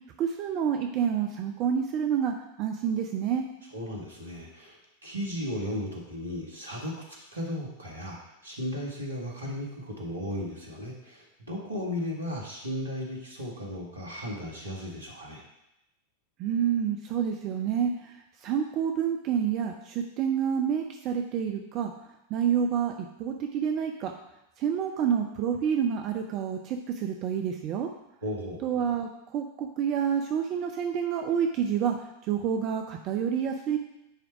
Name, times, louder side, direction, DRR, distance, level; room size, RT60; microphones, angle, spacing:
voice 1, 0.2-3.5 16.4-18.1 18.4-21.9 22.3-22.9 23.2-24.1 24.6-27.9 28.6-33.8, right 8 dB, 40° right, 3 dB, 0.6 m, -28 dB
voice 2, 3.7-8.2 8.4-15.4 28.2-28.6, equal, 80° right, -2 dB, 1.7 m, -35 dB
10.0 x 3.5 x 4.7 m, 0.86 s
figure-of-eight pair, 90°, 0 cm